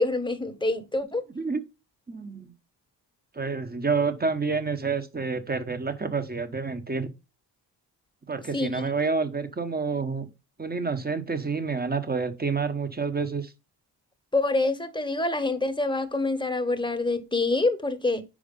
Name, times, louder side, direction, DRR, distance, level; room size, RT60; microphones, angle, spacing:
voice 1, 0.0-1.2 8.5-8.8 14.3-18.2, left 2 dB, 10° left, 1.1 m, -26 dB
voice 2, 1.3-1.6 2.1-2.5 3.3-7.1 8.3-10.3 10.6-13.5, right 4 dB, 20° right, 1.0 m, -28 dB
5.0 x 4.7 x 5.3 m
cardioid pair, 75°, 44 cm